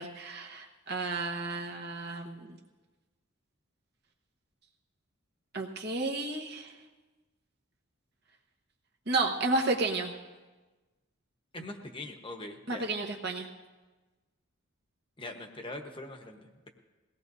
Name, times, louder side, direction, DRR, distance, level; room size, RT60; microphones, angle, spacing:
voice 1, 0.0-2.6 5.5-6.7 9.1-10.1 12.7-13.5, right 3 dB, 50° right, 1 dB, 1.3 m, -32 dB
voice 2, 11.5-12.8 15.2-16.7, left 2 dB, 25° left, 4 dB, 1.1 m, -42 dB
22.0 x 17.5 x 2.7 m, 1.2 s
head